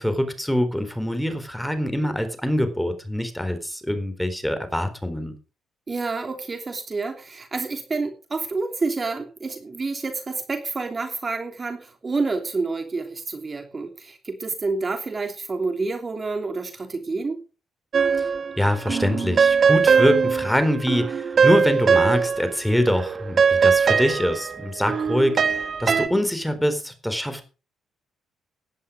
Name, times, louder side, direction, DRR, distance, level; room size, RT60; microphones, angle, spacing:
voice 1, 0.0-5.3 18.6-27.4, equal, 5° left, 9 dB, 4.1 m, -24 dB
voice 2, 5.9-17.4, right 3 dB, 30° right, 6 dB, 3.0 m, -28 dB
sound 1, 17.9-18.6 18.9-22.6 22.9-26.1, right 6 dB, 45° right, 1.7 m, -21 dB
17.0 x 11.5 x 5.1 m, 0.34 s
cardioid pair, 90°, 0 cm